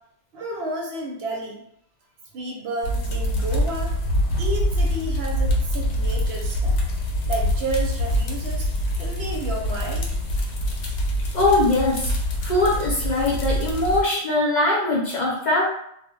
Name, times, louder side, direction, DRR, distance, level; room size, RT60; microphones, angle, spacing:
voice 1, 0.3-1.6 2.3-3.9 4.4-6.8 7.3-8.7 9.0-10.1, right 2 dB, 65° right, 0 dB, 0.8 m, -31 dB
sound 1, 2.8-14.0, equal, 80° left, 0.9 m, -25 dB
voice 2, 11.3-12.1 12.4-15.7, left 2 dB, 45° left, -5 dB, 0.7 m, -21 dB
2.1 x 2.1 x 3.6 m, 0.71 s
omnidirectional pair, 1.2 m